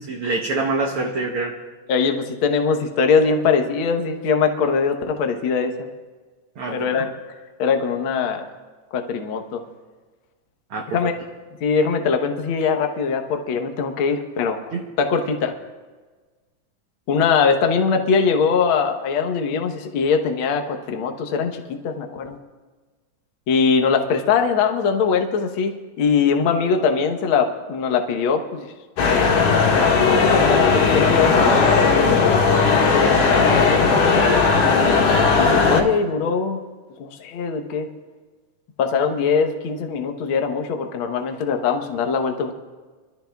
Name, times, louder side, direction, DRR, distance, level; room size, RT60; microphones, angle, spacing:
voice 1, 0.0-1.6 6.6-7.1 10.7-10.9 14.7-14.8, right 3 dB, 65° right, 1 dB, 1.5 m, -25 dB
voice 2, 1.9-5.9 6.7-7.1 7.6-8.5 8.9-9.6 10.9-11.2 11.6-15.5 17.1-22.4 23.5-28.7 29.2-29.3 29.9-34.4 35.4-36.6 37.0-37.9 38.8-42.5, left 5 dB, 60° left, 5 dB, 1.3 m, -22 dB
sound 1, 29.0-35.8, left 4 dB, 85° left, 3.1 m, -17 dB
25.5 x 13.5 x 2.3 m, 1.4 s
omnidirectional pair, 3.6 m